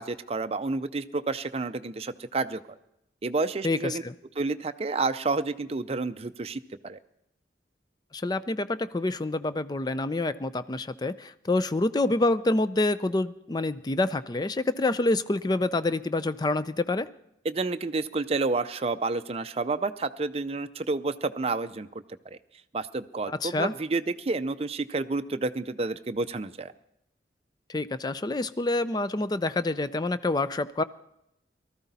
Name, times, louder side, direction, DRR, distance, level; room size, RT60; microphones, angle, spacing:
voice 1, 0.0-2.6 3.2-4.0 4.4-7.0 17.4-21.9 22.3-22.4 22.7-26.7, right 3 dB, 35° right, 10 dB, 0.5 m, -30 dB
voice 2, 3.6-4.1 8.1-17.1 23.3-23.7 27.7-30.8, left 2 dB, 25° left, 13 dB, 0.4 m, -27 dB
19.0 x 13.5 x 4.1 m, 0.80 s
head